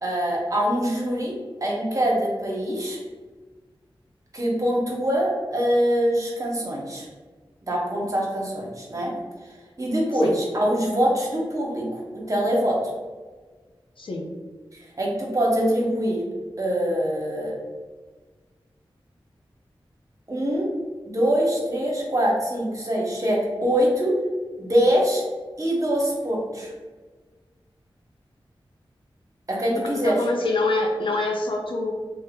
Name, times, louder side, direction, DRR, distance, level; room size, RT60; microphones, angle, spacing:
voice 1, 0.0-1.3 1.6-3.0 4.3-7.1 7.7-9.1 9.8-12.8 15.0-16.2 16.6-17.6 20.3-20.7 21.1-24.1 24.6-25.2 25.6-26.7 29.5-30.2, equal, 35° right, -3 dB, 0.9 m, -23 dB
voice 2, 14.0-14.3 29.9-31.9, left 2 dB, 65° left, 1 dB, 0.5 m, -25 dB
2.7 x 2.1 x 3.5 m, 1.4 s
cardioid pair, 45°, 10 cm